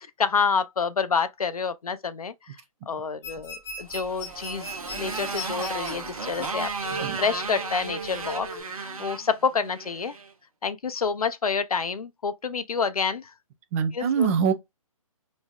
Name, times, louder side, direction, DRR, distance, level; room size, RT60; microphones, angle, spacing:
voice 1, 0.2-2.3 2.9-6.7 7.0-8.5 8.8-10.1 10.6-13.3 13.9-14.3, left 5 dB, 90° left, 0.6 m, -28 dB
sound 1, 3.2-8.6, equal, 15° left, 1.1 m, -39 dB
Motorcycle, 3.9-10.3, right 4 dB, 75° right, 1.0 m, -34 dB
voice 2, 13.7-14.5, right 7 dB, 25° right, 0.4 m, -24 dB
3.1 x 2.6 x 2.3 m
hypercardioid pair, 140°, 18 cm